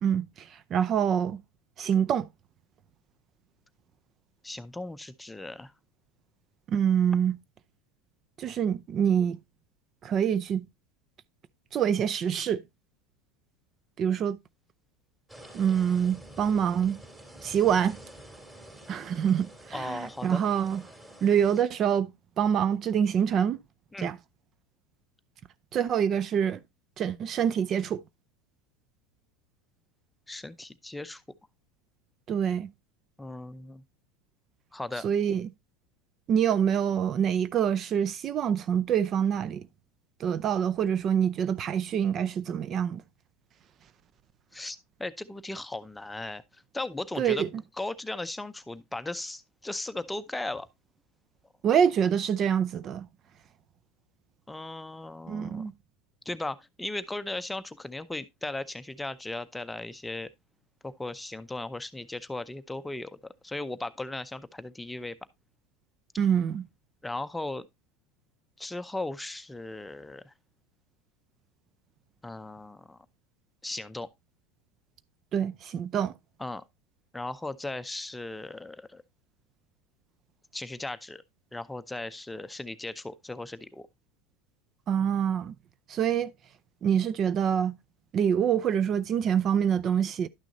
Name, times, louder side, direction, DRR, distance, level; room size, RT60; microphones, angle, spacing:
voice 1, 0.0-1.4 1.8-2.3 6.7-7.4 8.4-9.4 10.0-10.7 11.7-12.6 14.0-14.4 15.5-17.0 17.4-18.0 18.9-20.8 21.2-23.6 24.0-24.2 25.7-26.6 27.0-28.0 32.3-32.7 35.0-35.5 36.3-39.7 40.2-43.0 47.2-47.5 51.6-53.1 55.3-55.7 66.2-66.7 75.3-76.1 84.9-85.5 85.9-86.3 86.8-87.8 88.1-90.3, right 8 dB, 40° right, 0.4 m, -26 dB
voice 2, 4.4-5.7 19.7-20.4 23.9-24.1 30.3-31.2 33.2-33.8 34.7-35.1 44.5-47.5 47.8-50.7 54.5-55.7 56.3-60.3 60.8-65.2 67.0-67.7 68.6-70.3 72.2-73.0 73.6-74.1 76.4-76.6 77.1-79.0 80.5-81.2 81.5-83.9, left 2 dB, 10° left, 0.6 m, -37 dB
sound 1, 15.3-21.6, right 1 dB, 15° right, 2.8 m, -48 dB
11.5 x 6.2 x 2.6 m
supercardioid pair, 110°, 0 cm